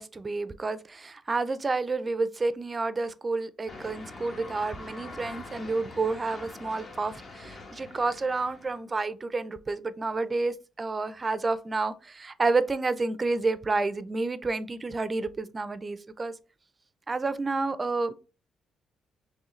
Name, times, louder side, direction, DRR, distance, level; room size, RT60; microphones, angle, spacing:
voice 1, 0.0-16.3 17.1-18.1, right 3 dB, 30° right, 14 dB, 0.4 m, -30 dB
sound 1, 3.7-8.8, left 3 dB, 45° left, 1.1 m, -44 dB
4.6 x 3.0 x 3.1 m, 0.34 s
cardioid pair, 90°, 0 cm